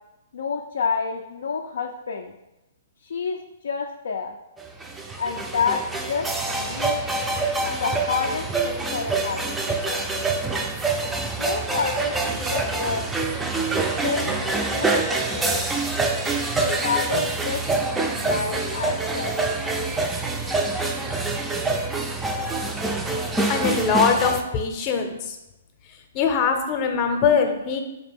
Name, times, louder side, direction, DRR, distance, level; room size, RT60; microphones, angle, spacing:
voice 1, 0.3-2.3 3.0-4.4 5.2-7.0 7.6-9.6 9.8-10.3 11.4-13.1 13.8-15.7 16.6-19.5, left 5 dB, 75° left, 3 dB, 0.3 m, -29 dB
sound 1, 4.6-24.4, right 3 dB, 10° right, 0.4 m, -26 dB
voice 2, 23.5-25.4 26.1-27.8, left 6 dB, 35° left, 4 dB, 0.6 m, -22 dB
4.2 x 2.9 x 3.4 m, 0.97 s
hypercardioid pair, 130°, 0 cm